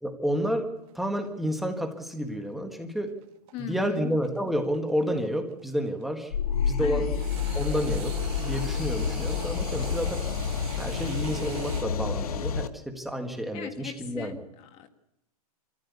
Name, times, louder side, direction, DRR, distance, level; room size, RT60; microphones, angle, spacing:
voice 1, 0.0-3.2 3.6-7.1 7.5-10.3 10.8-14.4, equal, ahead, 4 dB, 1.7 m, -30 dB
sound 1, 0.8-6.0 7.1-11.9, right 12 dB, 30° right, 2.1 m, -44 dB
voice 2, 3.5-4.1 6.8-7.1 13.5-14.9, left 9 dB, 30° left, 7 dB, 1.8 m, -39 dB
sound 2, 6.3-12.7, left 6 dB, 75° left, 1.6 m, -29 dB
24.5 x 15.0 x 8.4 m, 0.85 s
hypercardioid pair, 155°, 19 cm